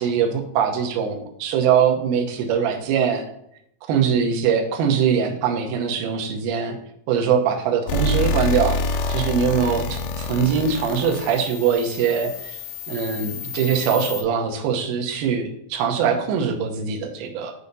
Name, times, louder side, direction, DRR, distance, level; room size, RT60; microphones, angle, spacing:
voice 1, 0.0-3.3 3.9-6.8 7.1-12.6 12.9-17.5, right 7 dB, 75° right, 2 dB, 2.6 m, -22 dB
sound 1, 7.9-14.2, left 3 dB, 80° left, 2.3 m, -27 dB
8.0 x 2.8 x 5.2 m, 0.75 s
omnidirectional pair, 4.5 m